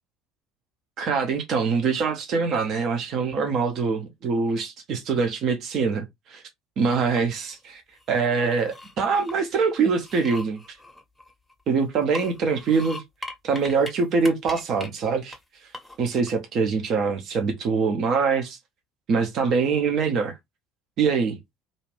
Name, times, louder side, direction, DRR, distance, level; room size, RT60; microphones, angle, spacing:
voice 1, 1.0-6.4 6.8-7.8 8.1-10.6 11.7-13.0 13.4-15.4 16.0-18.6 19.1-20.3 21.0-21.4, right 5 dB, 50° right, 0.7 m, -24 dB
sound 1, 6.9-7.5 8.0-9.5 9.9-11.6 12.0-13.9 14.2-14.9 15.3-15.4 15.7-16.3, left 1 dB, ahead, 0.9 m, -40 dB
2.6 x 2.4 x 3.3 m
figure-of-eight pair, 65°, 0 cm